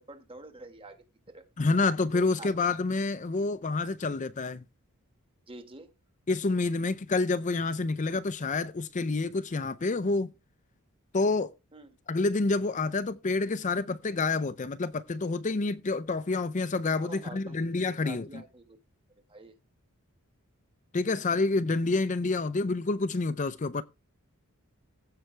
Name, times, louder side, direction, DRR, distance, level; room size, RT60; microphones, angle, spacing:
voice 1, 0.0-1.5 2.1-2.5 5.5-5.9 11.7-12.0 17.0-18.8 19.3-19.5, right 2 dB, 25° right, 1.7 m, -47 dB
voice 2, 1.6-4.6 6.3-10.3 11.1-11.5 12.1-18.3 20.9-23.8, left 3 dB, 35° left, 0.5 m, -28 dB
15.5 x 5.7 x 3.3 m
head